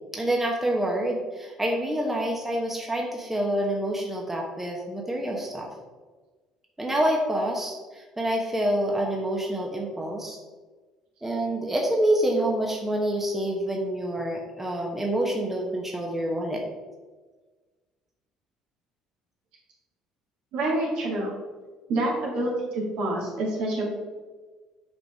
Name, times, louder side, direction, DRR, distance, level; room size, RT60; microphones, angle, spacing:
voice 1, 0.1-5.7 6.8-10.4 11.2-16.6, right 1 dB, 10° right, 0 dB, 1.2 m, -27 dB
voice 2, 20.5-21.3 21.9-23.9, right 1 dB, 60° right, -2 dB, 2.1 m, -27 dB
8.0 x 5.2 x 3.5 m, 1.3 s
figure-of-eight pair, 55°, 2 cm